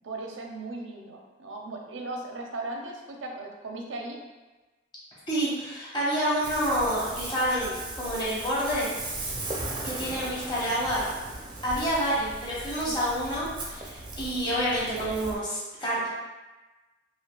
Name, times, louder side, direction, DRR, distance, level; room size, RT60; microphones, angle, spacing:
voice 1, 0.0-4.2 12.8-13.0, right 2 dB, 90° right, 1 dB, 0.6 m, -37 dB
voice 2, 5.3-8.9 9.8-11.1 11.6-16.1, equal, 25° left, -7 dB, 0.9 m, -28 dB
Ocean, 6.4-15.3, right 2 dB, 25° right, 0.4 m, -37 dB
4.9 x 2.2 x 2.3 m, 1.2 s
head